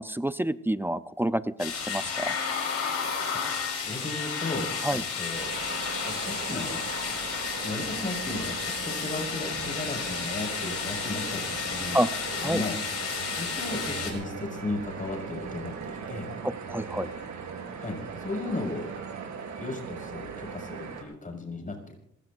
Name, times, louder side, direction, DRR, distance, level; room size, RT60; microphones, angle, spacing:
voice 1, 0.0-2.3 4.8-5.0 11.9-12.1 12.4-12.6 16.4-17.1, right 1 dB, 5° right, 13 dB, 0.6 m, -28 dB
sound 1, 1.6-14.1, left 6 dB, 55° left, 5.1 m, -32 dB
voice 2, 3.8-5.5 6.0-6.8 7.6-12.0 12.3-12.8 13.3-16.3 17.8-18.9 19.6-22.0, left 2 dB, 25° left, 2 dB, 5.8 m, -35 dB
sound 2, 5.3-21.0, right 6 dB, 70° right, 4.2 m, -39 dB
27.0 x 16.0 x 2.6 m, 0.72 s
cardioid pair, 90°, 30 cm